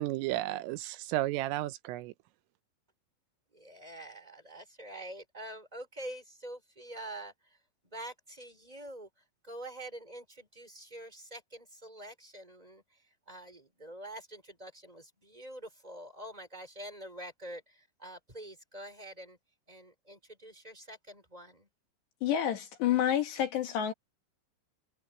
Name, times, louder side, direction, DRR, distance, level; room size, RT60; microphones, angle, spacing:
voice 1, 0.0-2.1, right 16 dB, 85° right, 3.6 m, -33 dB
voice 2, 3.5-7.3 7.9-9.1 9.4-12.8 13.3-19.4 19.7-21.7, right 1 dB, 10° right, 5.4 m, -46 dB
voice 3, 22.2-23.9, left 10 dB, 65° left, 3.5 m, -29 dB
omnidirectional pair, 5.7 m